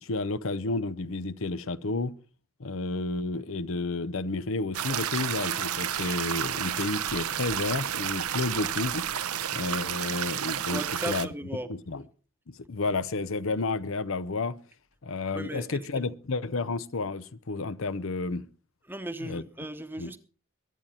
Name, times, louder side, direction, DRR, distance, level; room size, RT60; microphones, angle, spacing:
voice 1, 0.0-2.1 2.6-9.1 9.5-11.3 11.7-12.0 12.5-14.6 15.0-18.4 19.2-19.4 20.0-20.1, left 3 dB, 65° left, 0.7 m, -31 dB
sound 1, 4.7-11.3, right 9 dB, 90° right, 0.8 m, -31 dB
voice 2, 10.7-11.7 15.3-16.1 18.9-20.2, right 1 dB, 10° right, 1.0 m, -37 dB
23.0 x 9.2 x 4.3 m
head